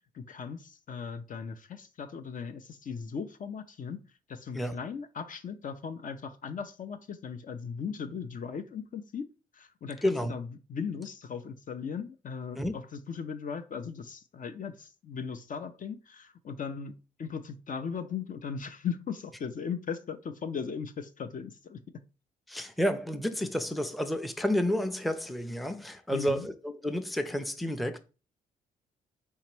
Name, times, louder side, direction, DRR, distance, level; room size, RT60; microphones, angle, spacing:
voice 1, 0.1-4.0 4.3-9.2 9.5-16.9 17.2-22.0 26.1-26.5, left 6 dB, 45° left, 0.5 m, -38 dB
voice 2, 10.0-10.3 12.6-12.7 22.5-28.0, left 1 dB, ahead, 0.6 m, -30 dB
4.4 x 2.8 x 3.1 m
hypercardioid pair, 45°, 19 cm